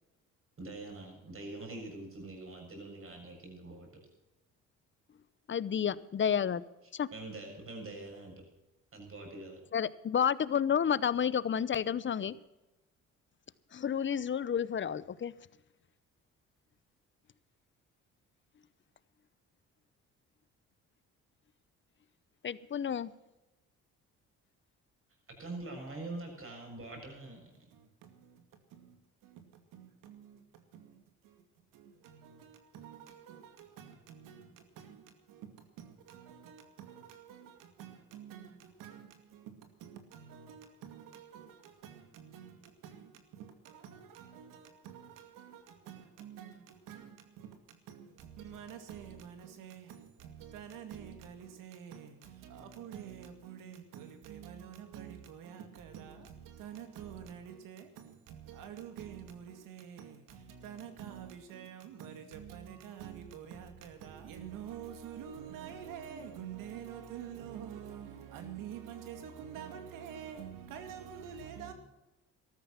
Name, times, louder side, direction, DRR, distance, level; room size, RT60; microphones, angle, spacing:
voice 1, 0.6-4.0 7.1-8.5 8.9-9.6 25.3-27.7, right 2 dB, 40° right, 6.9 m, -44 dB
voice 2, 5.5-6.6 7.0-7.1 9.7-12.4 13.7-15.3 22.4-23.1, left 8 dB, 35° left, 0.8 m, -30 dB
voice 3, 27.7-29.0 29.2-31.4 31.7-71.7, right 8 dB, 80° right, 2.4 m, -48 dB
13.5 x 13.5 x 5.8 m
supercardioid pair, 70°, 32 cm